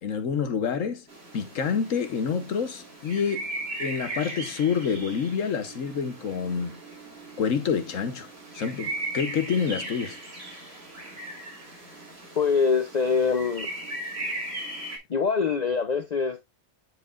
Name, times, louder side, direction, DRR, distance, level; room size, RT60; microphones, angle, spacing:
voice 1, 0.0-1.0 1.3-3.5 3.8-6.8 7.4-8.3 8.5-10.2, left 6 dB, 70° left, 1.4 m, -27 dB
sound 1, 1.1-15.0, right 2 dB, 45° right, 3.0 m, -38 dB
voice 2, 12.4-13.7 15.1-16.4, left 5 dB, 50° left, 0.5 m, -24 dB
10.5 x 4.8 x 2.4 m
omnidirectional pair, 1.4 m